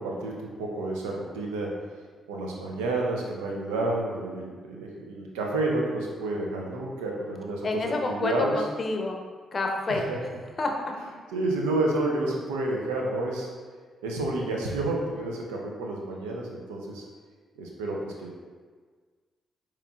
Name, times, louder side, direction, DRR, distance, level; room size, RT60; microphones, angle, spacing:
voice 1, 0.0-1.7 2.3-8.6 9.9-10.2 11.3-13.5 14.0-17.0 17.6-18.3, right 2 dB, 90° right, -1 dB, 0.5 m, -30 dB
voice 2, 7.6-9.2 9.5-10.0 10.6-10.7, left 2 dB, 45° left, 2 dB, 0.6 m, -28 dB
4.8 x 3.0 x 2.3 m, 1.5 s
hypercardioid pair, 45°, 0 cm